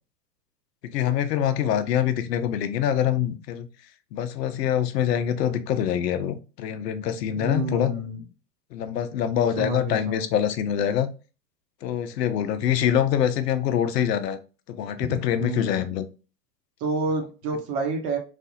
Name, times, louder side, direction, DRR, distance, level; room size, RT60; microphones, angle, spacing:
voice 1, 0.8-3.7 4.1-8.0 8.7-11.1 11.8-14.4 14.7-16.1, left 9 dB, 75° left, 11 dB, 0.7 m, -25 dB
voice 2, 7.3-8.2 9.6-10.2 15.1-15.8 16.8-18.2, right 2 dB, 40° right, 3 dB, 1.1 m, -29 dB
3.3 x 2.5 x 2.6 m, 0.34 s
hypercardioid pair, 115°, 49 cm